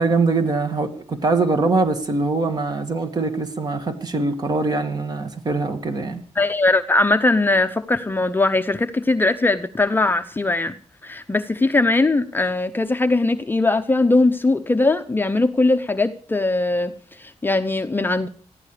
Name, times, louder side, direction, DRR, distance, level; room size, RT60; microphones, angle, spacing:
voice 1, 0.0-6.2, right 3 dB, 35° right, 2.3 m, -22 dB
voice 2, 6.4-10.7 11.0-18.3, left 2 dB, 15° left, 0.8 m, -20 dB
19.5 x 14.5 x 5.0 m
wide cardioid pair, 160°, 12 cm